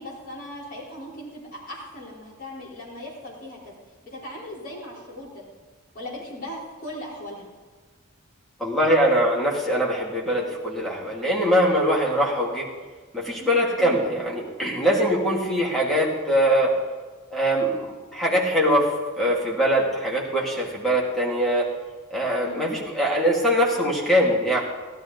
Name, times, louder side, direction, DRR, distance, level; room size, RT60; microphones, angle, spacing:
voice 1, 0.0-3.7 4.0-5.4 5.9-7.5 13.8-14.0 22.4-22.7, left 1 dB, 45° left, -6 dB, 3.8 m, -38 dB
voice 2, 8.6-12.7 13.1-16.7 17.3-21.7 22.1-24.6, equal, ahead, -4 dB, 2.5 m, -22 dB
16.0 x 12.5 x 4.0 m, 1.4 s
head